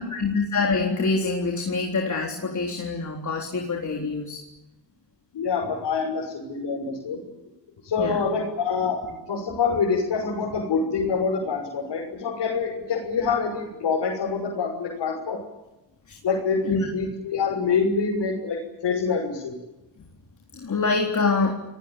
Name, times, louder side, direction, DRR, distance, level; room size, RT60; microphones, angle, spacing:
voice 1, 0.0-4.4 8.0-8.2 16.1-16.2 16.6-16.9 20.5-21.5, left 4 dB, 45° left, 1 dB, 3.9 m, -25 dB
voice 2, 5.3-7.2 7.8-15.4 16.2-19.5, left 5 dB, 80° left, -3 dB, 6.5 m, -26 dB
29.5 x 18.5 x 8.9 m, 0.99 s
cardioid pair, 90°, 42 cm